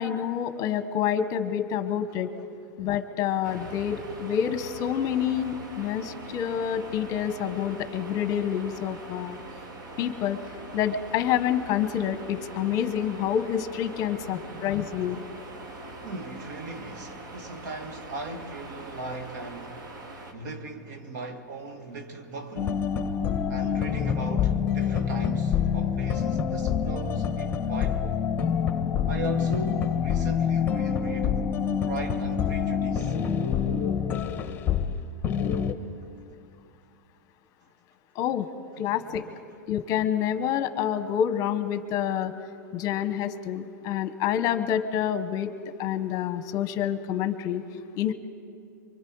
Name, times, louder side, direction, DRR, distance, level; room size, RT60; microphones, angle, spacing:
voice 1, 0.0-2.3 2.8-9.4 10.0-10.4 10.7-15.2 38.1-38.5 38.8-39.3 39.7-42.3 42.7-45.5 45.8-47.6 48.0-48.1, left 9 dB, 35° left, 1.0 m, -27 dB
voice 2, 2.1-2.4 12.7-12.9 14.2-15.0 16.0-19.9 20.3-22.8 23.5-28.3 29.1-31.4 31.8-33.2 38.8-39.4, right 2 dB, 75° right, 2.1 m, -38 dB
sound 1, 3.4-20.3, right 2 dB, 90° right, 2.5 m, -42 dB
sound 2, 22.6-35.0 35.2-35.7, left 7 dB, 20° left, 1.2 m, -26 dB
25.0 x 24.0 x 4.7 m
supercardioid pair, 140°, 10 cm